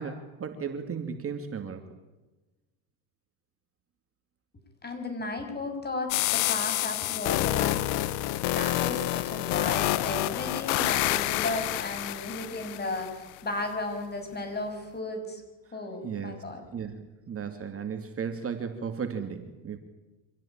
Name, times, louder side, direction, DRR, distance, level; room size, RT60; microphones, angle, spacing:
voice 1, 0.0-1.8 16.0-16.4 16.7-19.8, right 6 dB, 35° right, 6 dB, 2.5 m, -35 dB
voice 2, 4.8-15.4 15.7-16.6, left 2 dB, 25° left, 5 dB, 6.9 m, -35 dB
sound 1, 6.1-13.1, left 16 dB, 80° left, 1.3 m, -28 dB
26.0 x 16.5 x 8.9 m, 1.2 s
supercardioid pair, 95°, 40 cm